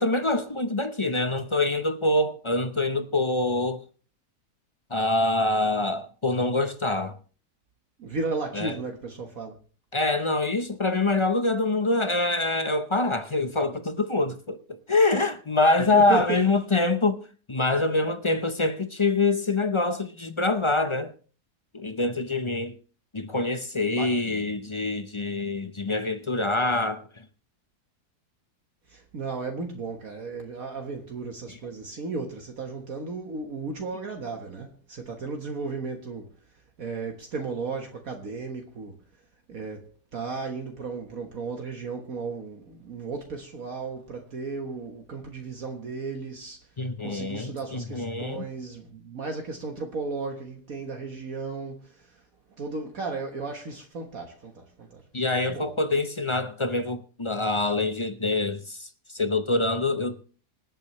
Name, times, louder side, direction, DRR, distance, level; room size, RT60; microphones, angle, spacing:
voice 1, 0.0-3.8 4.9-7.2 8.5-8.8 9.9-17.2 17.5-21.1 21.7-22.8 23.1-27.1 31.5-31.6 46.8-48.4 55.1-60.2, left 2 dB, 30° left, 0.6 m, -25 dB
voice 2, 8.0-9.6 15.9-16.4 23.9-24.5 28.9-36.3 36.8-38.9 39.5-46.6 47.0-51.9 52.6-55.0 55.3-55.7, right 4 dB, 60° right, 1.7 m, -34 dB
26.0 x 8.7 x 3.1 m
omnidirectional pair, 1.7 m